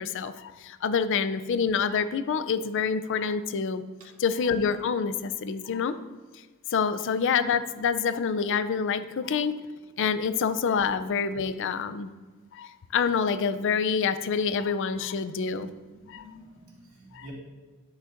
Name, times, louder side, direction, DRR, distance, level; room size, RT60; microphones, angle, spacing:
voice 1, 0.0-3.8 4.2-6.0 6.7-9.5 10.0-12.1 12.5-15.7 16.1-16.2 17.1-17.3, left 6 dB, 60° left, 12 dB, 0.4 m, -27 dB
voice 2, 15.7-17.3, equal, 85° right, -3 dB, 2.3 m, -50 dB
9.9 x 8.1 x 2.6 m, 1.4 s
head